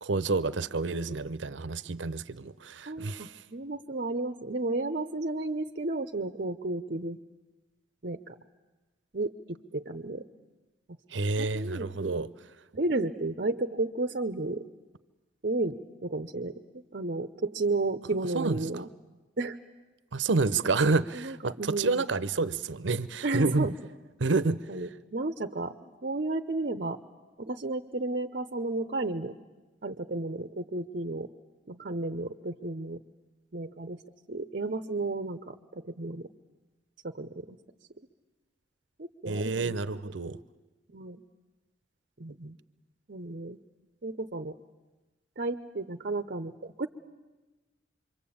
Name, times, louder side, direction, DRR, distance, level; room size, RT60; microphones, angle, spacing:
voice 1, 0.0-3.3 11.1-12.3 18.3-18.6 20.1-23.7 24.2-24.6 39.3-40.4, right 3 dB, 80° right, 0.8 m, -29 dB
voice 2, 2.9-7.2 8.0-8.4 9.1-10.2 11.4-12.2 12.7-14.6 15.4-18.9 19.4-19.6 21.1-22.0 23.2-23.7 24.7-27.0 27.4-29.3 29.8-31.3 31.7-33.0 33.5-34.0 34.3-36.3 37.0-37.6 39.0-39.8 40.9-41.2 42.2-42.6 43.1-43.6 44.0-44.5 45.4-46.9, right 2 dB, 55° right, 0.9 m, -33 dB
27.0 x 23.5 x 8.7 m
head